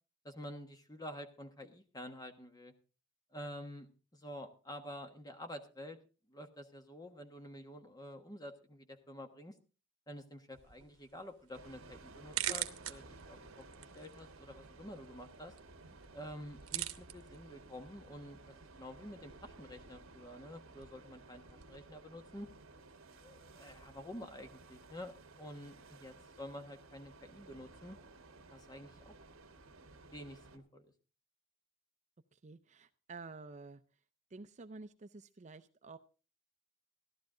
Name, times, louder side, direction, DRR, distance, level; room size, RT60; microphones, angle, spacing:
voice 1, 0.2-2.7 3.3-3.9 4.1-6.0 6.3-9.5 10.1-13.6 13.9-15.5 16.1-22.5 23.2-28.0 28.5-29.1 30.1-30.9, left 1 dB, 20° left, 7 dB, 1.3 m, -49 dB
sound 1, 10.5-21.8, right 13 dB, 85° right, 0.9 m, -46 dB
sound 2, 11.5-30.6, right 3 dB, 65° right, 1.6 m, -56 dB
voice 2, 32.3-33.8 34.3-36.0, right 3 dB, 35° right, 10 dB, 0.5 m, -50 dB
15.5 x 11.5 x 3.8 m, 0.35 s
head